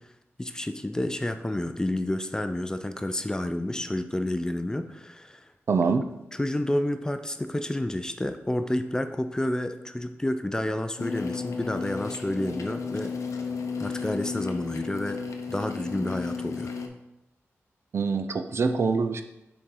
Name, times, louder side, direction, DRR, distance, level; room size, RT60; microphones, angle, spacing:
voice 1, 0.4-5.5 6.4-13.1 13.8-15.2 15.5-16.7, left 1 dB, 15° left, 9 dB, 0.4 m, -30 dB
voice 2, 5.7-6.0 17.9-19.2, right 4 dB, 60° right, 8 dB, 0.5 m, -24 dB
sound 1, 11.0-16.9, left 5 dB, 85° left, 0.6 m, -33 dB
6.4 x 4.3 x 3.8 m, 0.92 s
wide cardioid pair, 85°, 5 cm